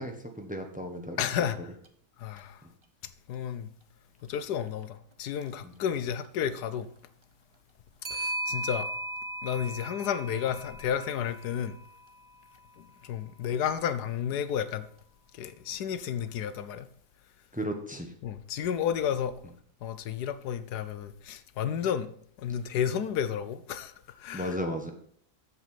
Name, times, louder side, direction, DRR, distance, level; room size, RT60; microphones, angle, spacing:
voice 1, 0.0-1.2 5.6-5.7 17.5-18.1 24.3-24.9, equal, 5° right, 1.1 m, -34 dB
voice 2, 1.2-1.6 2.2-2.7 3.3-3.7 4.2-6.9 8.1-8.9 9.4-11.8 12.8-14.9 15.3-16.9 18.2-19.4 19.8-22.1 22.4-24.6, left 9 dB, 90° left, 1.3 m, -32 dB
Clock, 1.8-1.9 2.4-2.5 5.3-5.5 8.0-12.3, right 1 dB, 25° right, 0.7 m, -37 dB
8.0 x 7.3 x 5.8 m
omnidirectional pair, 1.7 m